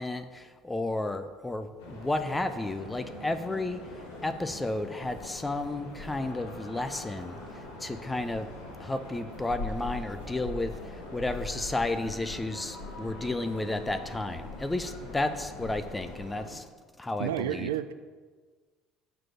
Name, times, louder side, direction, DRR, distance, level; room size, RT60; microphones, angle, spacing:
voice 1, 0.0-3.8 4.2-8.5 8.8-16.6 17.0-17.7, left 2 dB, 15° left, 9 dB, 0.5 m, -32 dB
sound 1, 1.8-16.5, left 2 dB, 85° left, 1.7 m, -42 dB
voice 2, 17.2-17.9, right 11 dB, 85° right, 13 dB, 0.3 m, -30 dB
6.0 x 4.8 x 6.2 m, 1.5 s
hypercardioid pair, 70°, 0 cm